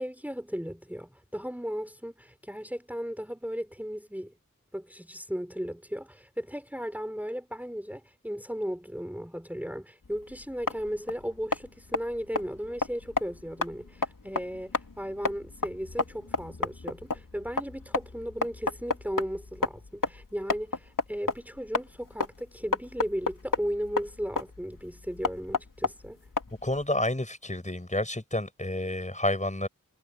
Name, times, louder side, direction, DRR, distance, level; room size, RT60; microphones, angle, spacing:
voice 1, 0.0-4.3 4.7-26.2, equal, 5° right, 5.3 m, -36 dB
sound 1, 10.0-26.8, left 3 dB, 70° left, 3.5 m, -33 dB
voice 2, 26.6-29.7, left 1 dB, 20° left, 6.6 m, -29 dB
wide cardioid pair, 55°, 33 cm